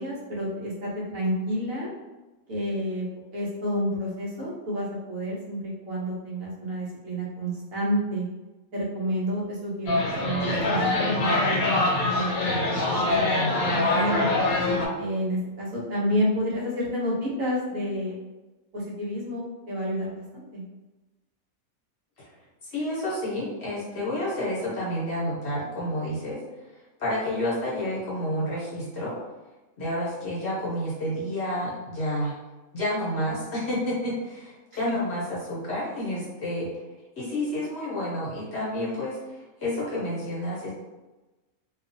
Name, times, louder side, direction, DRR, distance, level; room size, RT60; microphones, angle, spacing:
voice 1, 0.0-1.9 2.5-3.1 3.3-8.3 8.7-11.9 12.1-14.3 15.0-18.2 18.7-20.6 34.8-34.9, equal, 65° right, -6 dB, 1.2 m, -30 dB
sound 1, 9.9-14.9, left 2 dB, 75° left, 1.2 m, -24 dB
voice 2, 22.7-26.4 27.0-29.1 29.8-32.3 32.7-36.7 37.2-40.7, left 1 dB, 55° left, -7 dB, 1.0 m, -30 dB
2.8 x 2.3 x 2.6 m, 1.1 s
omnidirectional pair, 1.5 m